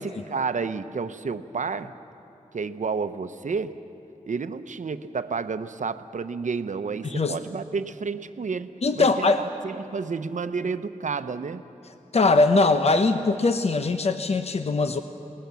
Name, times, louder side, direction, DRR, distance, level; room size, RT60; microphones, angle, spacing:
voice 1, 0.0-1.9 2.5-3.8 4.2-11.6, right 5 dB, 70° right, 11 dB, 0.8 m, -31 dB
voice 2, 7.0-7.3 8.8-9.4 12.1-15.0, left 3 dB, 55° left, 8 dB, 0.8 m, -21 dB
26.5 x 19.5 x 7.0 m, 2.9 s
wide cardioid pair, 80°, 13 cm